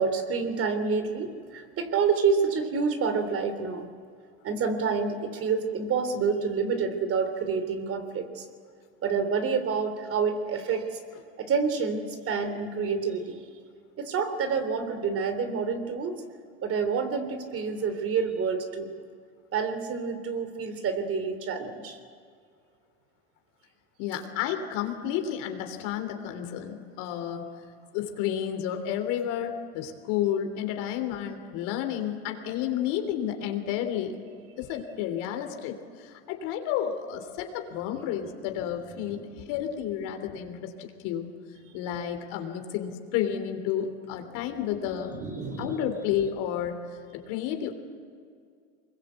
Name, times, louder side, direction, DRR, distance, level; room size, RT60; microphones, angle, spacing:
voice 1, 0.0-3.9 4.4-8.5 9.0-11.0 11.4-13.4 14.0-16.1 16.6-18.9 19.5-22.0 39.0-39.4 44.4-44.5 45.1-45.8, right 5 dB, 40° right, 8 dB, 3.3 m, -28 dB
voice 2, 24.0-27.5 27.9-34.2 34.6-41.3 41.7-45.1 45.6-46.8 47.1-47.7, left 10 dB, 70° left, 5 dB, 3.3 m, -31 dB
24.5 x 21.5 x 8.2 m, 2.2 s
supercardioid pair, 100°, 33 cm